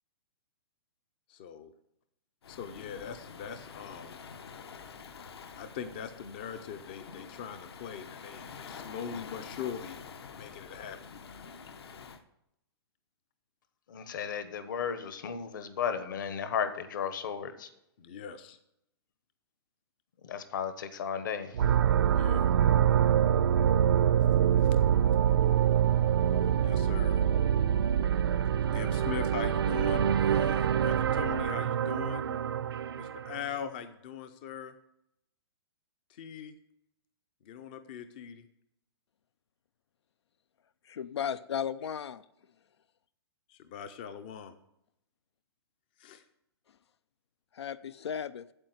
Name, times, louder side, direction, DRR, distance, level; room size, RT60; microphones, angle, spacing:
voice 1, 1.3-1.7 2.5-4.2 5.6-10.0 10.3-11.0 18.0-18.6 22.0-22.5 24.6-24.7 26.6-27.3 28.7-32.4 32.9-34.7 36.1-36.5 37.4-38.4 43.5-44.5 46.0-46.2, left 7 dB, 20° left, 10 dB, 0.5 m, -41 dB
Waves surf, 2.4-12.2, left 6 dB, 70° left, 1.2 m, -47 dB
voice 2, 13.9-17.7 20.2-21.6, left 7 dB, 50° left, 11 dB, 1.2 m, -34 dB
sound 1, 21.5-33.5, right 9 dB, 65° right, 0.6 m, -25 dB
voice 3, 40.8-42.2 47.5-48.5, left 8 dB, 85° left, 16 dB, 0.5 m, -35 dB
8.8 x 7.9 x 7.9 m, 0.81 s
hypercardioid pair, 175°, 14 cm